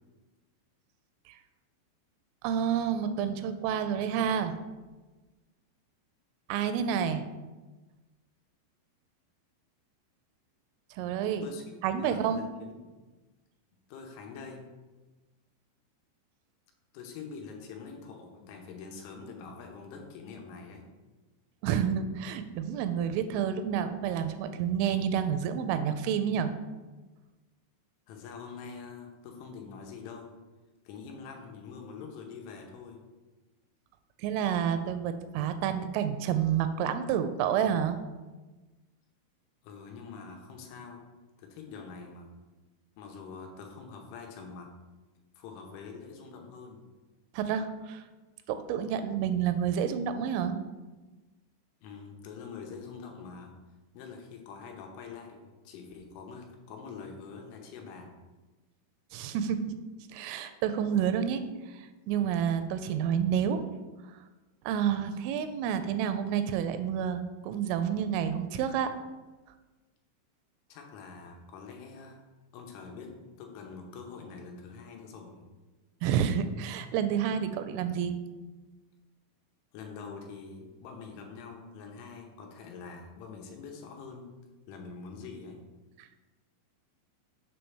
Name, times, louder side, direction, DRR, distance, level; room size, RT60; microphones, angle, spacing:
voice 1, 2.4-4.6 6.5-7.2 10.9-11.4 11.8-12.4 21.6-26.5 34.2-38.0 47.3-48.0 48.5-50.6 59.1-59.8 60.1-61.4 61.7-63.6 64.7-68.9 76.0-78.2 86.0-86.1, right 8 dB, 85° right, 10 dB, 3.1 m, -29 dB
voice 2, 11.1-12.9 13.9-14.7 16.9-20.9 28.1-30.3 30.9-33.0 39.6-41.1 41.4-42.3 43.0-44.7 45.4-46.8 51.8-53.5 54.0-58.2 70.7-72.2 72.5-75.5 79.7-84.3 84.7-85.6, left 5 dB, 85° left, 2 dB, 3.3 m, -45 dB
7.7 x 3.3 x 6.1 m, 1.2 s
omnidirectional pair, 5.5 m